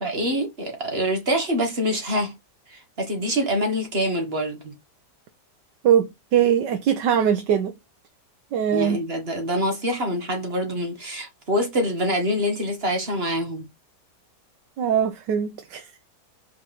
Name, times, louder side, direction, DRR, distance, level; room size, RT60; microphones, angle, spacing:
voice 1, 0.0-2.3 2.7-4.7 8.7-13.7, equal, 35° right, 2.0 m, -25 dB
voice 2, 5.8-7.7 8.5-9.0 14.8-15.9, right 9 dB, 85° right, 1.5 m, -21 dB
5.3 x 4.8 x 5.5 m
omnidirectional pair, 1.8 m